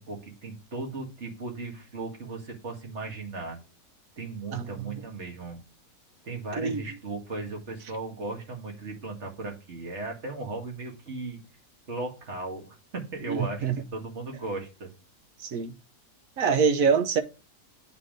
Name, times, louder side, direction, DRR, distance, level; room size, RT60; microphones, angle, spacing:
voice 1, 0.0-3.6 4.2-5.6 6.2-11.4 11.9-14.9, right 3 dB, 45° right, 2.2 m, -36 dB
voice 2, 4.5-5.0 6.6-6.8 13.3-13.8 15.4-15.7 16.4-17.2, right 6 dB, 65° right, 1.2 m, -25 dB
8.2 x 3.8 x 5.0 m
omnidirectional pair, 1.6 m